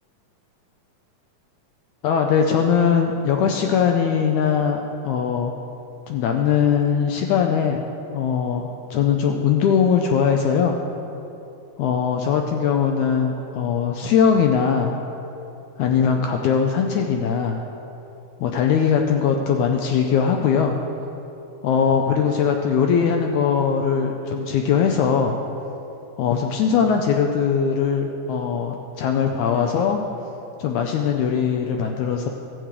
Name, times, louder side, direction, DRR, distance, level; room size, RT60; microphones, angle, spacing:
voice 1, 2.0-5.5 6.1-7.8 8.1-10.7 11.8-14.9 15.8-17.6 18.4-20.8 21.6-25.4 26.2-30.0 30.6-32.3, left 7 dB, 80° left, 3 dB, 1.7 m, -20 dB
13.5 x 4.7 x 8.0 m, 2.9 s
omnidirectional pair, 3.9 m